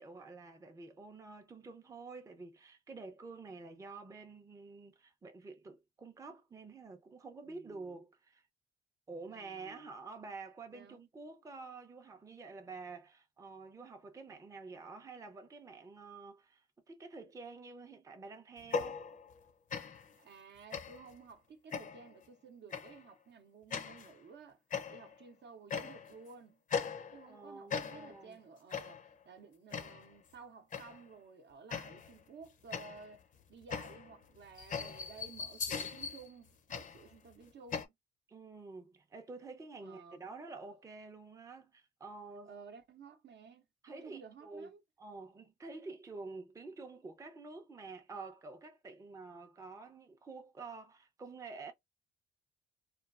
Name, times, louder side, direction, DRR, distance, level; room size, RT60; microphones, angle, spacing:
voice 1, 0.0-8.4 9.1-19.0 27.3-28.4 38.3-42.5 43.8-44.7 45.0-51.7, right 3 dB, 15° right, 0.5 m, -49 dB
voice 2, 7.4-7.9 9.3-9.9 10.7-11.0 20.2-24.6 24.9-26.6 27.1-37.9 39.8-40.2 42.5-44.8, right 5 dB, 60° right, 0.7 m, -54 dB
sound 1, 18.6-19.4 19.7-20.1 20.7-21.1 21.7-22.1 22.7-23.0 23.7-24.1 24.7-25.2 25.7-26.2 26.7-27.4 27.7-28.2 28.7-29.1 29.7-30.1 30.7-31.1 31.7-32.2 32.7-37.8, left 6 dB, 40° left, 0.5 m, -40 dB
3.0 x 2.3 x 2.3 m
cardioid pair, 90°, 20 cm